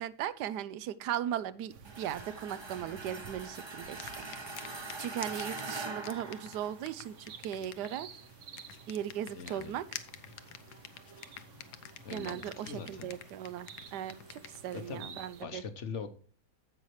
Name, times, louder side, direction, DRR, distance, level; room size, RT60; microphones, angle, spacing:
voice 1, 0.0-4.3 5.0-8.1 8.9-9.9 12.1-15.6, right 10 dB, 80° right, 16 dB, 1.2 m, -38 dB
sound 1, 1.7-15.4, right 7 dB, 55° right, 1.0 m, -53 dB
sound 2, 1.8-7.1, right 3 dB, 20° right, 0.8 m, -43 dB
sound 3, 3.9-15.0, left 10 dB, 75° left, 1.3 m, -50 dB
voice 2, 9.3-9.7 12.0-13.1 14.7-16.1, left 5 dB, 50° left, 9 dB, 1.1 m, -42 dB
15.5 x 5.6 x 3.1 m, 0.41 s
omnidirectional pair, 1.8 m